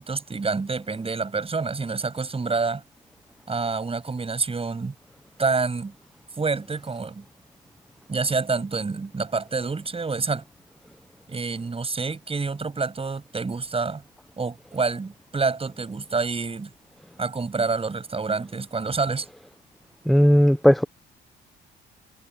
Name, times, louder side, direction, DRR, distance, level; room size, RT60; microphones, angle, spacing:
voice 1, 0.0-2.8 3.5-4.9 5.4-5.9 6.4-7.2 8.1-10.4 11.3-14.0 14.4-16.7 17.2-19.3, right 4 dB, 30° right, 7.7 m, -27 dB
voice 2, 20.1-20.8, equal, ahead, 0.9 m, -16 dB
cardioid pair, 90°, 20 cm